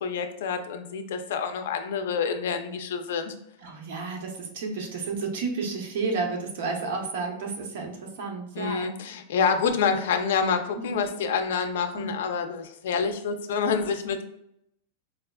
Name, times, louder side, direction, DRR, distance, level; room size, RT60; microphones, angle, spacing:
voice 1, 0.0-3.3 8.5-14.2, left 6 dB, 75° left, 8 dB, 0.5 m, -27 dB
voice 2, 3.6-8.9 10.8-11.0 11.9-12.1, right 4 dB, 60° right, 2 dB, 0.8 m, -31 dB
4.7 x 2.3 x 2.3 m, 0.76 s
supercardioid pair, 165°, 0 cm